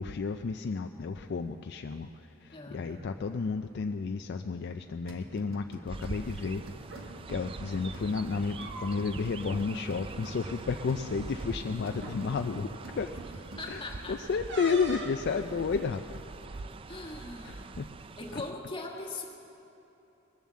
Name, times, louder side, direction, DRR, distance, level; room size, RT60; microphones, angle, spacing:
voice 1, 0.0-6.6 6.9-13.1 13.7-13.8 14.1-16.2 16.5-16.6 17.4-17.9 18.3-18.4, left 5 dB, 55° left, 6 dB, 0.4 m, -32 dB
voice 2, 2.5-3.2 13.6-14.2 16.9-17.8 18.2-19.2, left 2 dB, 25° left, -1 dB, 1.5 m, -41 dB
sound 1, 5.1-14.0, right 1 dB, 80° right, 1.4 m, -47 dB
Chirp tweet, 5.9-18.5, right 3 dB, 25° right, 0.3 m, -44 dB
sound 2, 6.8-7.0 8.3-9.2 9.5-9.6 10.0-10.3 11.2-11.3 11.9-12.2 14.5-15.2, right 1 dB, 60° right, 1.5 m, -41 dB
20.5 x 7.1 x 7.5 m, 2.9 s
head